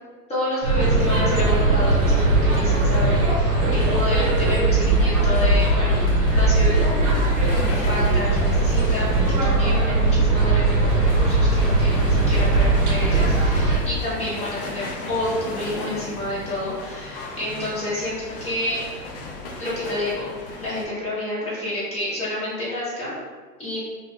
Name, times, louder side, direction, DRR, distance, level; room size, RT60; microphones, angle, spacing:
voice 1, 0.3-6.0 6.3-6.7 7.7-18.8 19.6-20.3 20.6-23.1 23.6-23.8, left 1 dB, 15° left, -9 dB, 1.0 m, -29 dB
sound 1, 0.6-13.8, right 2 dB, 50° right, 0.8 m, -19 dB
sound 2, 1.0-20.9, left 2 dB, 40° left, 0.4 m, -36 dB
2.3 x 2.2 x 3.3 m, 1.4 s
hypercardioid pair, 115°, 49 cm